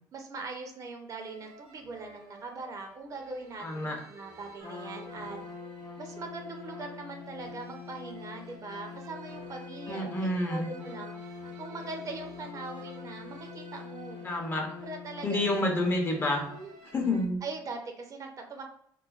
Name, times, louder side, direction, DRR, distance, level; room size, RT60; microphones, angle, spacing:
voice 1, 0.1-5.4 6.0-11.1 11.6-14.2 14.8-15.6 16.5-16.7 17.4-18.6, right 3 dB, 40° right, 3 dB, 0.5 m, -41 dB
sound 1, 1.2-17.3, right 3 dB, 80° right, 0.9 m, -53 dB
voice 2, 3.6-4.0 9.9-10.7 14.2-14.8 15.2-16.5 16.9-17.4, left 1 dB, 25° left, 1 dB, 0.6 m, -29 dB
Trumpet, 4.6-16.7, left 5 dB, 60° left, 0.9 m, -44 dB
3.1 x 2.2 x 2.3 m, 0.68 s
cardioid pair, 100°, 8 cm